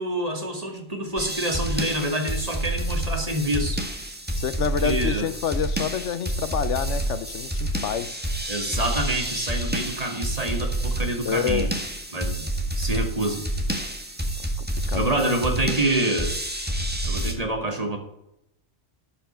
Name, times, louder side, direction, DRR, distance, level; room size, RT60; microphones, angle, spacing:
voice 1, 0.0-3.9 4.8-5.3 8.5-11.7 12.1-12.5 12.8-13.4 14.9-16.4 17.0-18.0, right 1 dB, 35° right, 2.2 m, -27 dB
sound 1, 1.2-17.3, right 1 dB, 10° right, 1.7 m, -28 dB
voice 2, 4.4-8.2 11.2-11.7 14.6-15.2, left 8 dB, 85° left, 1.1 m, -28 dB
12.5 x 5.7 x 8.8 m
omnidirectional pair, 1.2 m